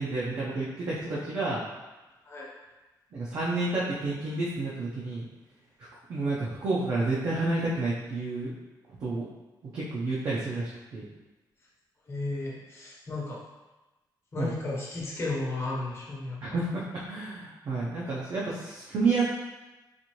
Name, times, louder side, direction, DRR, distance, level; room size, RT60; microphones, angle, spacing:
voice 1, 0.0-1.6 3.1-5.3 6.1-8.5 9.0-9.3 9.7-11.0 14.4-14.5 16.4-19.2, right 3 dB, 50° right, -7 dB, 0.6 m, -30 dB
voice 2, 12.1-13.4 14.3-16.6, left 2 dB, 35° left, -5 dB, 0.9 m, -34 dB
4.2 x 2.6 x 3.0 m, 1.1 s
wide cardioid pair, 175°, 8 cm